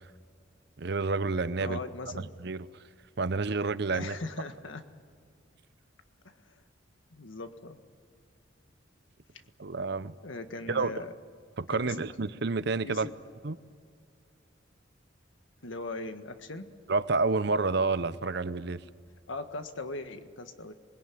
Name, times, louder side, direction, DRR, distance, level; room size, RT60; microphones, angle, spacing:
voice 1, 0.8-1.8 2.4-2.7 3.2-4.2 9.6-10.1 10.7-10.9 11.6-13.1 13.4-13.6 16.9-18.8, right 3 dB, 60° right, 14 dB, 0.8 m, -29 dB
voice 2, 1.6-2.3 3.9-4.8 6.2-6.6 7.1-7.8 10.2-11.1 11.7-12.1 12.8-13.1 15.6-16.7 19.3-20.7, left 2 dB, 85° left, 8 dB, 1.6 m, -39 dB
27.0 x 21.0 x 9.4 m, 2.2 s
head